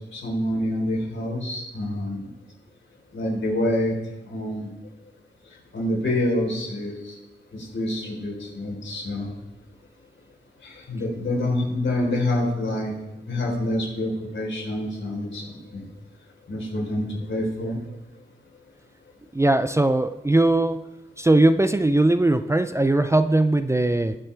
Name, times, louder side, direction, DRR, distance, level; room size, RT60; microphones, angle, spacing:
voice 1, 0.1-2.3 3.1-3.9 4.3-4.7 5.7-7.1 7.5-9.3 10.6-12.9 13.3-15.8 16.5-17.8, left 1 dB, 75° left, -2 dB, 4.0 m, -27 dB
voice 2, 19.3-20.8 21.2-24.2, right 2 dB, 15° right, 11 dB, 0.4 m, -20 dB
20.0 x 7.5 x 3.4 m, 0.96 s
wide cardioid pair, 85°, 20 cm